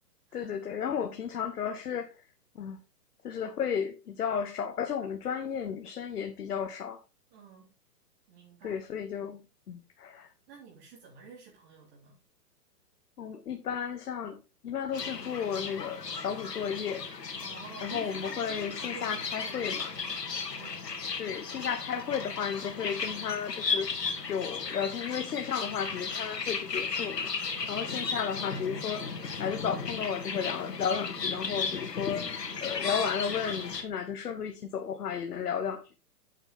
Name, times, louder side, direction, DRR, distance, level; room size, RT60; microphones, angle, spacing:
voice 1, 0.3-2.2 2.5-2.8 3.2-7.0 8.6-10.3 13.2-17.1 17.8-20.0 21.2-23.9 24.3-27.3 27.7-29.1 29.4-32.3 32.6-36.0, left 7 dB, 70° left, 1.3 m, -33 dB
voice 2, 7.3-7.7 8.3-8.8 10.5-12.2 17.4-19.8 20.6-20.9, right 5 dB, 40° right, 3.6 m, -50 dB
sound 1, 14.9-33.8, left 5 dB, 85° left, 2.5 m, -35 dB
8.5 x 8.1 x 3.7 m
hypercardioid pair, 135°, 47 cm